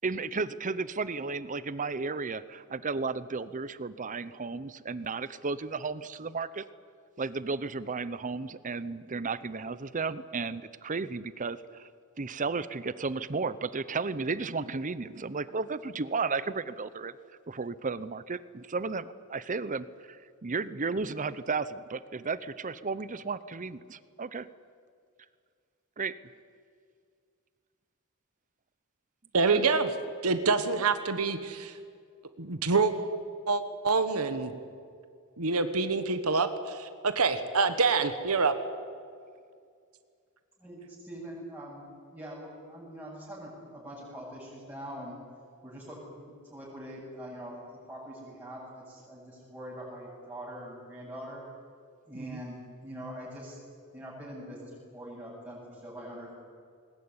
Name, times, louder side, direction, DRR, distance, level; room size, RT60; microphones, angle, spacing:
voice 1, 0.0-6.6 7.2-11.9 12.2-17.1 17.5-24.5 26.0-26.2 29.4-29.6 52.1-52.4, right 4 dB, 35° right, 16 dB, 0.7 m, -34 dB
voice 2, 29.3-29.9 30.2-31.7 32.4-32.9 33.5-34.5 35.4-38.5, right 4 dB, 75° right, 10 dB, 1.3 m, -26 dB
voice 3, 40.6-45.2 45.6-51.4 52.1-53.6 53.9-56.3, equal, 15° right, -8 dB, 7.1 m, -43 dB
20.5 x 20.0 x 9.8 m, 2.2 s
head